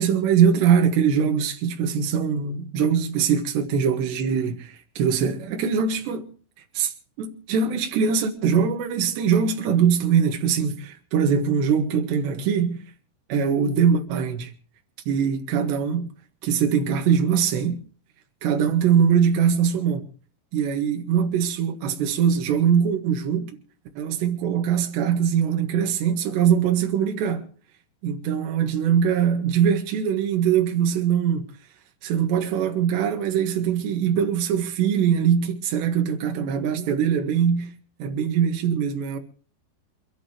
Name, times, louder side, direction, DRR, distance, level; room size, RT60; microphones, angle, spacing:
voice 1, 0.0-6.3 6.7-12.8 13.3-14.5 15.1-16.1 16.4-17.8 18.4-20.0 20.5-23.6 24.0-27.4 28.0-31.5 32.0-37.7 38.0-39.2, right 7 dB, 75° right, 3.9 m, -22 dB
28.5 x 12.5 x 3.2 m
omnidirectional pair, 5.1 m